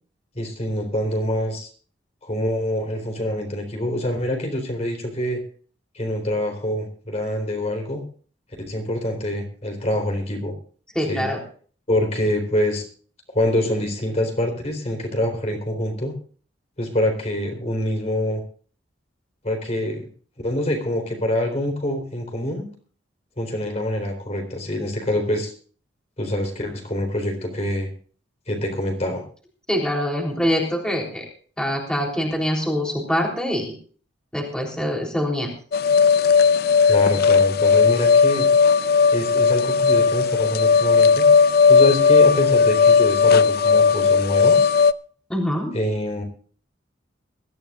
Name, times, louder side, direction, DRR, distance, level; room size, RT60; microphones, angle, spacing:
voice 1, 0.4-1.7 2.2-5.4 5.9-8.0 8.7-10.5 11.1-11.3 11.9-12.9 13.3-16.1 16.8-18.4 19.4-20.1 20.4-22.7 23.4-25.5 26.2-27.9 28.5-29.3 36.9-38.5 39.1-41.3 41.7-44.7 45.7-46.2, left 1 dB, 35° left, 3 dB, 4.0 m, -25 dB
voice 2, 11.0-11.4 29.7-31.3 31.6-33.7 34.3-35.5 45.3-45.7, equal, 5° left, -1 dB, 3.6 m, -24 dB
sound 1, 35.7-44.9, left 5 dB, 55° left, 0.5 m, -16 dB
22.5 x 14.0 x 2.5 m, 0.43 s
head